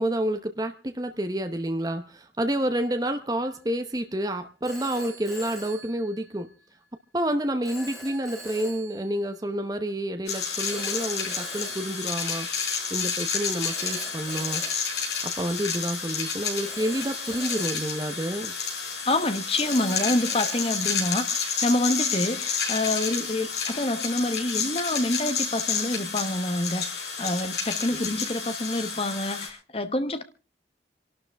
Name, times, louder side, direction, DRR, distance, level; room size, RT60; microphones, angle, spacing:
voice 1, 0.0-6.5 7.1-14.6 15.2-18.5, right 1 dB, 20° right, 0.8 m, -29 dB
Telephone, 3.5-3.7 4.6-6.6 7.6-9.4 10.6-12.8 13.6-16.0 16.6-19.0 19.6-21.8, right 1 dB, ahead, 3.5 m, -44 dB
sound 1, 10.3-29.5, left 6 dB, 70° left, 4.8 m, -30 dB
voice 2, 19.1-30.2, left 1 dB, 35° left, 1.0 m, -27 dB
27.0 x 12.0 x 3.4 m
head